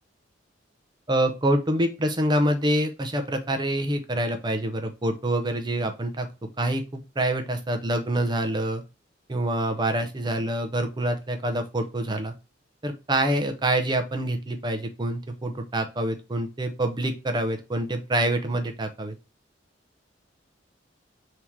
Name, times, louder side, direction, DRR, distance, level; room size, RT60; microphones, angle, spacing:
voice 1, 1.1-6.3 6.6-8.8 9.3-12.3 12.8-19.1, right 1 dB, 25° right, 6 dB, 0.6 m, -26 dB
3.6 x 2.8 x 4.5 m, 0.28 s
head